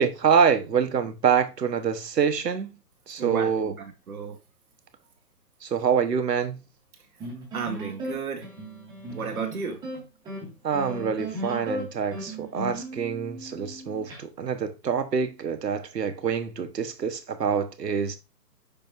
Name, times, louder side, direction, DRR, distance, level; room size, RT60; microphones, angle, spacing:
voice 1, 0.0-2.7 3.1-3.7 5.6-6.6 10.6-18.2, right 7 dB, 75° right, 1.3 m, -25 dB
voice 2, 3.2-4.4 7.0-7.1 7.5-8.5 9.1-9.8, right 5 dB, 60° right, 1.6 m, -33 dB
sound 1, 7.2-14.2, right 1 dB, 10° right, 1.6 m, -36 dB
7.1 x 5.1 x 2.6 m
hypercardioid pair, 145°, 49 cm